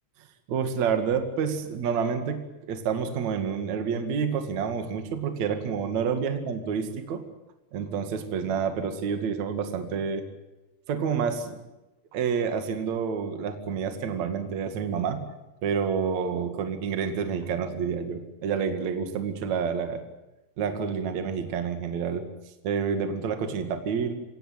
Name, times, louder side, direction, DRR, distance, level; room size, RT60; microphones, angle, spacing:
voice 1, 0.5-7.2 7.7-10.2 10.9-11.6 12.1-15.3 15.6-20.0 20.6-22.3 22.6-24.1, right 6 dB, 50° right, 7 dB, 3.1 m, -28 dB
25.5 x 17.5 x 9.5 m, 1.0 s
omnidirectional pair, 4.8 m